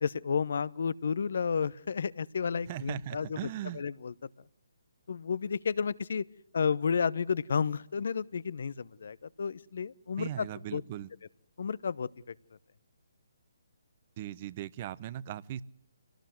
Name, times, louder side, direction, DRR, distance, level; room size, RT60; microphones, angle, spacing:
voice 1, 0.0-3.5 3.7-4.1 5.1-6.2 6.5-10.5 10.7-10.8 11.6-12.1, left 6 dB, 65° left, 20 dB, 0.9 m, -31 dB
voice 2, 2.7-3.8 10.2-11.1 14.2-15.6, right 12 dB, 35° right, 20 dB, 0.9 m, -38 dB
26.0 x 18.5 x 7.8 m, 0.71 s
figure-of-eight pair, 145°, 0 cm